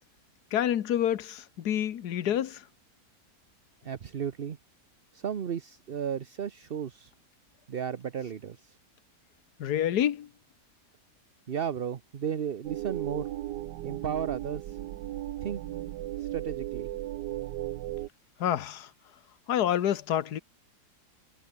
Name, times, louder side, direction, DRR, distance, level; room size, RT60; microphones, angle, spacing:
voice 1, 0.5-2.6 9.6-10.3 18.4-18.9 19.5-20.4, left 10 dB, 70° left, 1.6 m, -28 dB
voice 2, 3.8-4.6 5.1-7.1 7.7-8.8 11.5-13.3 13.8-14.8 15.4-15.6 16.2-16.9, right 8 dB, 45° right, 0.8 m, -34 dB
sound 1, 12.7-18.1, right 14 dB, 85° right, 1.4 m, -36 dB
omnidirectional pair, 1.8 m